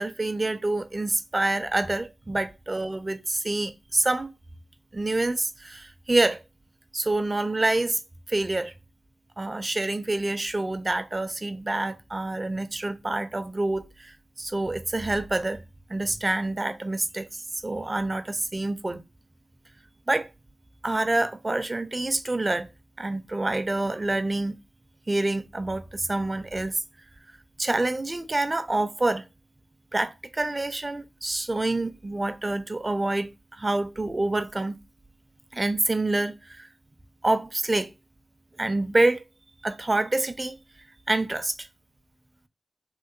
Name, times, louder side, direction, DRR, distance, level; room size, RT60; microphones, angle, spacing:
voice 1, 0.0-4.3 4.9-6.4 6.9-8.0 8.3-8.7 9.4-15.6 15.9-19.0 20.1-20.3 20.8-22.7 23.0-24.6 25.1-26.8 27.6-29.3 29.9-34.8 35.5-36.7 37.2-37.9 38.6-39.2 39.6-40.6 41.1-41.7, right 2 dB, 30° right, 0.4 m, -27 dB
3.6 x 2.5 x 2.4 m
cardioid pair, 60°, 0 cm